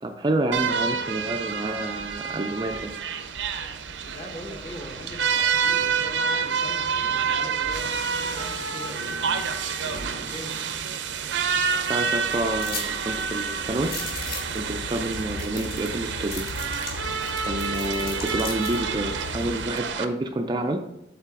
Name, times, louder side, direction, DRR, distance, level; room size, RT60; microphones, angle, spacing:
voice 1, 0.0-2.9 11.9-14.0 14.5-16.5 17.4-20.8, right 1 dB, 25° right, 5 dB, 0.4 m, -28 dB
sound 1, 0.5-20.0, right 6 dB, 80° right, 0.5 m, -28 dB
voice 2, 4.0-10.6, left 1 dB, 35° left, 0 dB, 1.3 m, -41 dB
sound 2, 12.6-12.9 13.2-13.3 13.8-14.6 15.1-15.2 15.4-16.0 16.3-18.8, left 3 dB, 55° left, 1.7 m, -36 dB
sound 3, 13.6-19.7, left 3 dB, 80° left, 0.4 m, -38 dB
8.1 x 3.9 x 3.7 m, 0.85 s
head